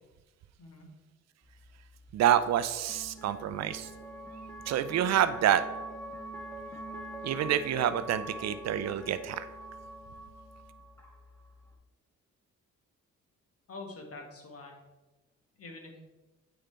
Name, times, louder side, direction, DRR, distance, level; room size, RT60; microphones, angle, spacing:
voice 1, 0.6-0.9 13.7-14.8 15.6-16.0, left 3 dB, 50° left, 1 dB, 1.7 m, -45 dB
sound 1, 1.4-11.7, right 1 dB, 10° left, 1.4 m, -44 dB
voice 2, 2.1-3.9 4.7-5.6 7.2-9.5, right 10 dB, 60° right, 12 dB, 0.5 m, -27 dB
8.7 x 5.1 x 3.3 m, 1.2 s
cardioid pair, 90°, 30 cm